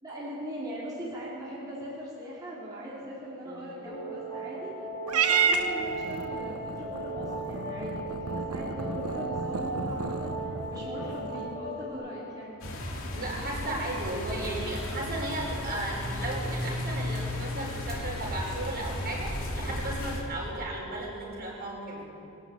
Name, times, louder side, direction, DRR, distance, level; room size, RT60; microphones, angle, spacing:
voice 1, 0.0-4.7 5.0-12.5, equal, 15° right, -9 dB, 4.0 m, -40 dB
sound 1, 3.8-11.9, right 2 dB, 25° left, 3.2 m, -36 dB
Purr / Meow, 5.1-11.6, right 5 dB, 85° right, 1.1 m, -32 dB
sound 2, 12.6-20.2, left 1 dB, 65° left, 3.0 m, -34 dB
voice 2, 13.1-22.1, right 1 dB, 45° right, -3 dB, 5.9 m, -35 dB
24.0 x 12.0 x 9.0 m, 2.9 s
head